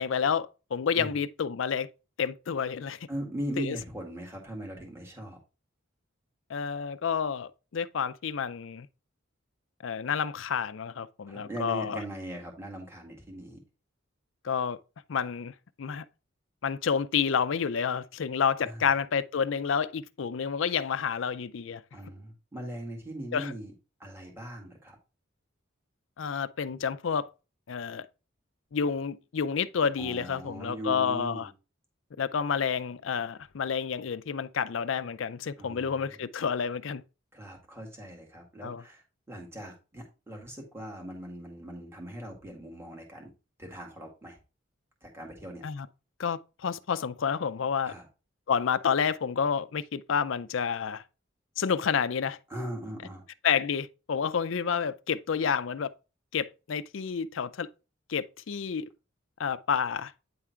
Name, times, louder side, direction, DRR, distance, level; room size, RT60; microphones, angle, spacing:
voice 1, 0.0-1.9 2.2-3.0 3.6-3.8 6.5-8.9 9.8-12.0 14.4-14.8 15.1-15.5 15.8-16.0 16.6-21.8 23.3-23.5 26.2-27.3 27.7-28.1 28.7-31.5 32.2-37.0 38.6-38.8 45.6-45.9 46.2-47.9 48.5-51.0 51.6-52.4 53.4-55.9 56.3-57.7 58.1-58.9 59.4-60.1, left 6 dB, 70° left, 0.5 m, -29 dB
voice 2, 3.1-5.4 11.3-13.6 18.6-18.8 21.9-23.7 24.0-25.0 30.0-31.5 35.6-36.2 37.3-43.3 43.6-44.4 45.0-45.6 47.8-48.1 52.5-53.2, right 1 dB, 10° right, 1.8 m, -40 dB
9.3 x 3.7 x 4.4 m
head